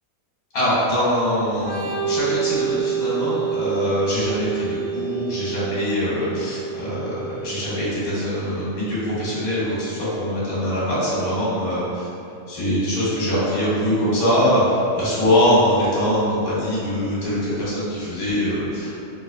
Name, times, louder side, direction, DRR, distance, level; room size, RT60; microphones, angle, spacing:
voice 1, 0.5-11.8 12.5-18.9, equal, 80° left, -9 dB, 1.5 m, -23 dB
Organ, 1.6-9.1, right 7 dB, 65° right, 1.2 m, -28 dB
3.8 x 2.7 x 2.3 m, 2.6 s
omnidirectional pair, 1.5 m